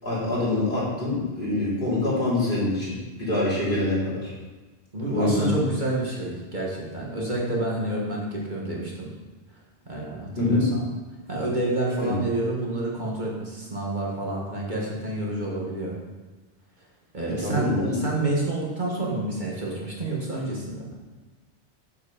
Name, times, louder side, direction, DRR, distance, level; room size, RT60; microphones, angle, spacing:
voice 1, 0.0-2.9 3.2-4.3 5.1-5.5 10.4-10.7 12.0-12.2 17.3-18.0, left 2 dB, 45° left, -8 dB, 3.5 m, -25 dB
voice 2, 4.9-9.1 9.8-10.9 11.3-16.0 17.1-20.8, right 2 dB, 45° right, -4 dB, 1.7 m, -29 dB
8.0 x 7.3 x 5.0 m, 1.2 s
omnidirectional pair, 1.2 m